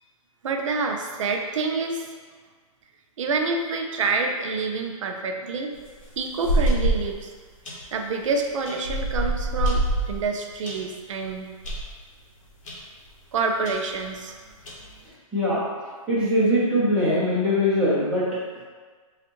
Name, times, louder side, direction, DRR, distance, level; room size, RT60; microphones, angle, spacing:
voice 1, 0.4-2.1 3.2-5.7 6.2-7.3 7.9-11.5 13.3-14.3, right 4 dB, 60° right, 3 dB, 0.5 m, -27 dB
sound 1, 5.7-7.2 7.6-7.9 8.6-10.8 11.2-11.3 11.6-11.9 12.6-12.8 13.1-13.2 13.6-13.7 14.5-15.0, right 1 dB, 60° left, 1.1 m, -25 dB
voice 2, 16.1-18.3, left 1 dB, 5° right, -11 dB, 0.7 m, -21 dB
4.2 x 2.4 x 3.0 m, 1.5 s
hypercardioid pair, 165°, 18 cm